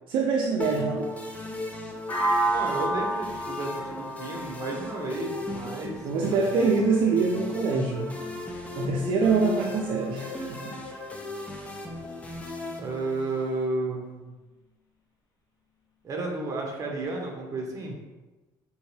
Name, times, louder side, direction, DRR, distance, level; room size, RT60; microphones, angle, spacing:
voice 1, 0.1-1.1 6.0-8.1 8.8-10.7, right 4 dB, 70° right, 0 dB, 0.5 m, -25 dB
sound 1, 0.6-13.6, left 2 dB, 15° left, 0.7 m, -36 dB
sound 2, 2.1-6.0, right 2 dB, 40° left, 1.5 m, -30 dB
voice 2, 2.5-6.0 6.2-6.7 12.8-14.3 16.0-18.0, right 2 dB, 40° right, 0 dB, 1.1 m, -32 dB
4.5 x 3.0 x 3.2 m, 1.1 s
cardioid pair, 105°, 9 cm